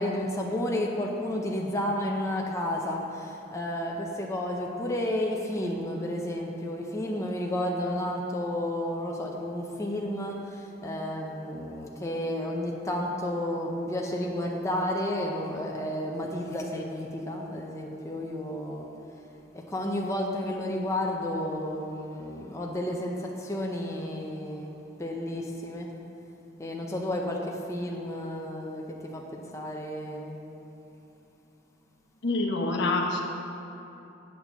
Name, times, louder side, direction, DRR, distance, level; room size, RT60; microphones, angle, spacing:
voice 1, 0.0-18.9 19.7-24.7 25.0-25.9 26.6-27.4 27.7-30.4, left 1 dB, 15° left, -1 dB, 0.6 m, -31 dB
voice 2, 32.2-33.2, left 2 dB, 65° left, 0 dB, 1.0 m, -26 dB
8.8 x 4.2 x 6.9 m, 2.9 s
head